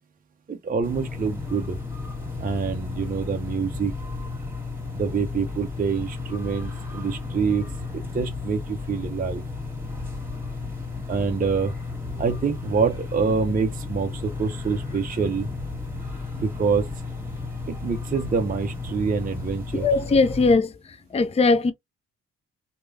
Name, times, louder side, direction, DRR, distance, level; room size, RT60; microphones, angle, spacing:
voice 1, 0.5-1.8 2.4-3.9 4.9-7.7 7.9-9.4 11.1-11.8 12.2-15.5 16.4-16.9 17.7-19.9, right 5 dB, 25° right, 0.6 m, -26 dB
sound 1, 0.8-20.6, left 3 dB, 5° right, 1.7 m, -33 dB
voice 2, 19.7-20.7 21.1-21.7, left 3 dB, 20° left, 0.5 m, -19 dB
3.0 x 2.3 x 2.5 m
supercardioid pair, 55°, 33 cm